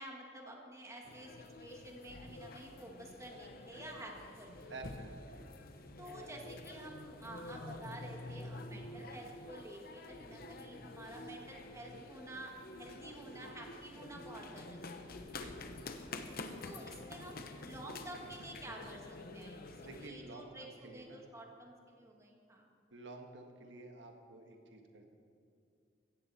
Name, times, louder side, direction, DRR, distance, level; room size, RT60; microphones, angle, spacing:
voice 1, 0.0-4.7 6.0-15.3 16.6-17.4 17.7-19.6 20.0-20.7 20.9-22.7, right 1 dB, 15° right, 0 dB, 1.8 m, -50 dB
sound 1, 1.0-20.1, left 2 dB, 55° left, 1.0 m, -48 dB
voice 2, 4.7-5.4 15.3-15.7 19.8-21.2 22.9-25.0, right 2 dB, 90° right, 4 dB, 1.4 m, -51 dB
16.0 x 15.0 x 4.3 m, 2.3 s
head